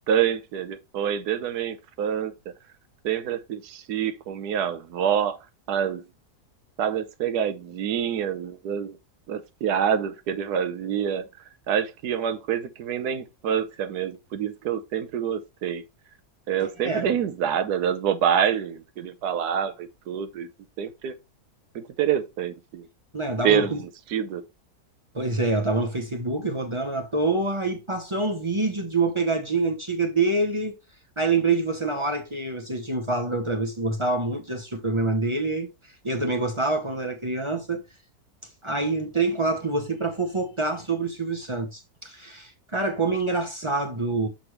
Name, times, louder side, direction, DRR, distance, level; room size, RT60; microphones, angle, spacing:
voice 1, 0.1-2.3 3.0-5.4 5.7-6.0 6.8-9.0 9.3-11.3 11.7-15.8 16.5-20.5 20.8-21.1 21.7-22.9 23.4-24.4, right 8 dB, 85° right, 1.3 m, -26 dB
voice 2, 16.6-17.2 23.1-23.8 25.1-30.7 31.2-37.8 38.6-44.3, right 3 dB, 25° right, 0.7 m, -26 dB
6.4 x 6.1 x 3.1 m
omnidirectional pair, 1.6 m